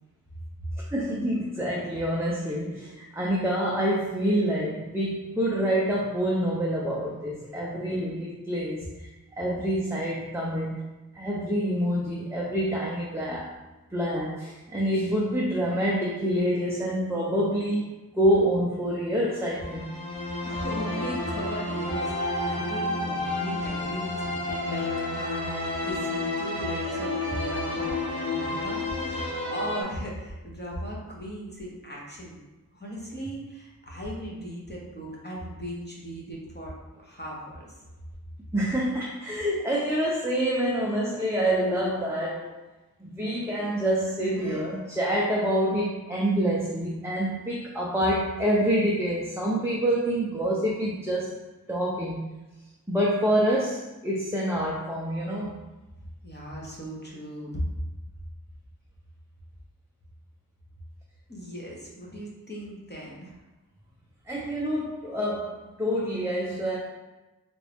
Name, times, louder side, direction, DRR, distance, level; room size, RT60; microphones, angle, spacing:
voice 1, 0.9-9.1 9.4-10.8 11.1-13.5 13.9-17.9 18.1-19.9 38.5-42.5 43.0-51.3 51.7-52.2 52.9-55.5 64.3-66.8, equal, 5° right, -4 dB, 0.6 m, -27 dB
sound 1, 19.4-29.8, left 2 dB, 90° left, 0.8 m, -30 dB
voice 2, 20.4-32.4 32.7-37.7 56.2-57.6 61.3-63.4, equal, 25° left, -4 dB, 1.1 m, -38 dB
3.9 x 2.6 x 3.4 m, 1.1 s
wide cardioid pair, 45°, 37 cm